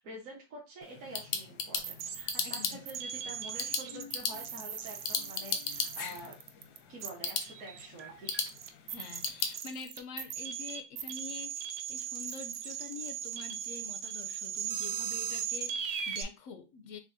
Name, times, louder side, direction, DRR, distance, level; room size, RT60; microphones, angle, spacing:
voice 1, 0.0-6.4 6.9-8.5, right 1 dB, 60° right, 1.4 m, -47 dB
sound 1, 0.8-9.6, left 6 dB, 90° left, 1.2 m, -37 dB
sound 2, 1.8-16.2, right 8 dB, 80° right, 0.5 m, -38 dB
voice 2, 2.4-2.8 8.9-17.0, left 5 dB, 70° left, 0.8 m, -46 dB
6.0 x 2.3 x 2.6 m
omnidirectional pair, 1.7 m